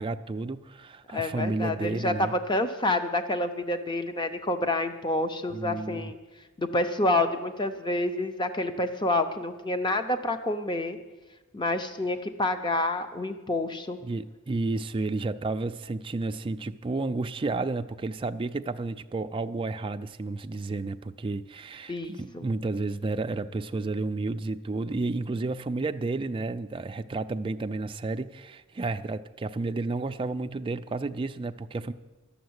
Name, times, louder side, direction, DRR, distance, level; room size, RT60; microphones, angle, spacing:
voice 1, 0.0-2.3 5.5-6.1 14.0-31.9, right 3 dB, 25° right, 0.4 m, -31 dB
voice 2, 1.1-6.2 6.6-11.0 11.5-14.0 21.9-22.4, left 2 dB, 20° left, 0.7 m, -28 dB
12.0 x 7.2 x 9.5 m
head